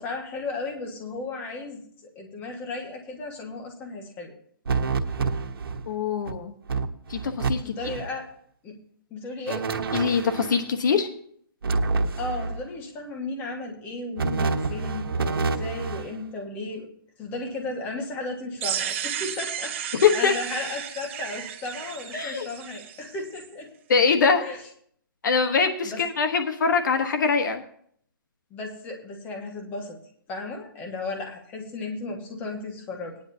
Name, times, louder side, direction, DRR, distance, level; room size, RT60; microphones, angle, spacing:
voice 1, 0.0-1.8 2.2-4.3 7.6-8.3 8.6-8.8 9.1-9.6 12.2-16.9 17.2-23.7 24.4-24.6 25.8-26.0 28.5-30.0 30.3-33.2, left 3 dB, 15° left, 2 dB, 1.7 m, -35 dB
sound 1, 4.7-5.9 6.3-6.4 6.7-7.5 7.8-8.1 9.5-10.6 11.6-12.6 14.2-16.1, right 4 dB, 90° right, 1.3 m, -27 dB
voice 2, 5.9-6.5 7.1-7.8 9.9-11.1 20.0-20.4 22.1-22.5 23.9-24.4 25.2-27.6, left 5 dB, 55° left, 6 dB, 1.2 m, -23 dB
sound 2, 18.6-23.5, right 9 dB, 35° right, 1.0 m, -33 dB
18.5 x 10.0 x 2.8 m, 0.64 s
hypercardioid pair, 165°, 12 cm